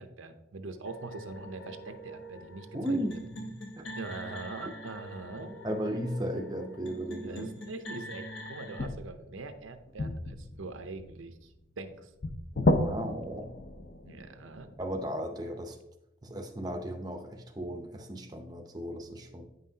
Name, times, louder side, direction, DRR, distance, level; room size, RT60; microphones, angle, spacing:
voice 1, 0.0-3.0 3.9-5.5 7.2-12.1 14.0-14.7, right 3 dB, 75° right, 7 dB, 0.6 m, -43 dB
sound 1, 0.9-8.9, equal, 60° left, 0.9 m, -44 dB
voice 2, 2.7-3.9 5.6-7.4 12.5-13.5 14.8-15.8 16.2-19.5, equal, 20° right, 3 dB, 0.6 m, -35 dB
sound 2, 6.8-6.9 8.8-15.0, left 2 dB, 45° left, 0.5 m, -33 dB
9.1 x 5.6 x 2.7 m, 0.88 s
head